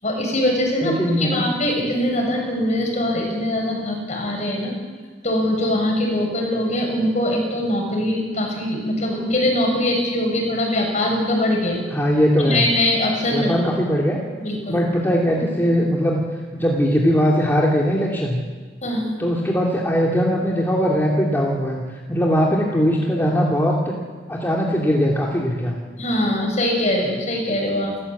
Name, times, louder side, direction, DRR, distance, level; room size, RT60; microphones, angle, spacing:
voice 1, 0.0-4.7 5.2-11.8 12.4-13.5 14.4-14.8 18.8-19.1 26.0-27.9, left 1 dB, 40° left, 1 dB, 7.1 m, -22 dB
voice 2, 0.8-1.5 11.9-12.7 13.3-14.2 14.7-16.2 16.5-18.4 19.2-24.0 24.3-25.7, equal, 10° left, -3 dB, 2.7 m, -20 dB
29.5 x 15.0 x 8.5 m, 1.5 s
head